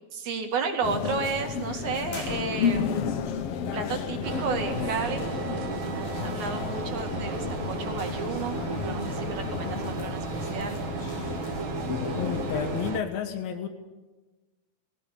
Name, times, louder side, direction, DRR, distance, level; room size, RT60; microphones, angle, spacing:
voice 1, 0.1-3.1 3.7-5.3 5.9-10.8, right 5 dB, 60° right, 4 dB, 3.3 m, -32 dB
sound 1, 0.8-12.9, left 7 dB, 65° left, 1.5 m, -32 dB
sound 2, 2.1-3.1, left 2 dB, 50° left, 5.4 m, -43 dB
sound 3, 4.2-13.0, right 7 dB, 80° right, 1.1 m, -34 dB
voice 2, 12.1-13.7, left 8 dB, 85° left, 7 dB, 3.2 m, -31 dB
20.0 x 16.0 x 10.0 m, 1.2 s
omnidirectional pair, 4.1 m